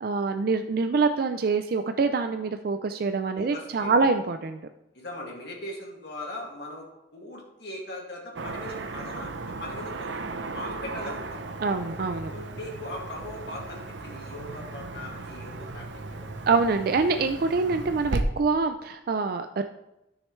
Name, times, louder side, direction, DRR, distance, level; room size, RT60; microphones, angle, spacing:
voice 1, 0.0-4.6 11.6-12.3 16.5-19.6, right 4 dB, 55° right, 7 dB, 0.4 m, -25 dB
voice 2, 3.3-3.9 4.9-10.1 10.5-11.4 12.3-16.5, left 1 dB, 60° left, -2 dB, 2.2 m, -40 dB
Car passing by / Traffic noise roadway noise, 8.4-18.2, right 3 dB, 85° right, 0.7 m, -36 dB
13.0 x 6.5 x 3.2 m, 0.90 s
head